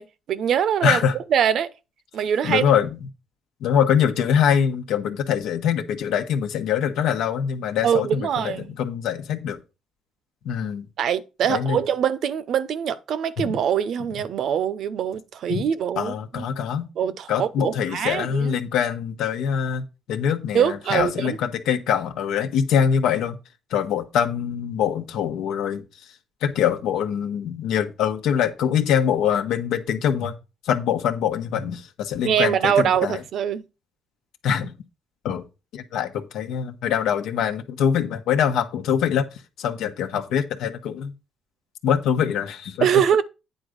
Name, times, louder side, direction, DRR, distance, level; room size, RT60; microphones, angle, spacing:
voice 1, 0.0-1.0 1.3-1.7 2.1-2.6 7.8-8.7 11.0-16.5 17.0-18.6 20.5-21.4 32.2-33.7 42.8-43.2, right 8 dB, 70° right, 0.7 m, -23 dB
voice 2, 0.8-1.1 2.4-3.0 3.6-9.6 10.4-10.8 11.5-11.8 13.4-13.6 15.5-15.7 16.0-16.9 17.3-23.4 23.7-25.8 26.4-30.4 30.6-33.2 34.4-34.7 35.2-35.4 35.7-39.3 39.6-41.1 41.8-42.9, left 8 dB, 90° left, 1.0 m, -23 dB
9.2 x 3.9 x 6.4 m
cardioid pair, 90°, 0 cm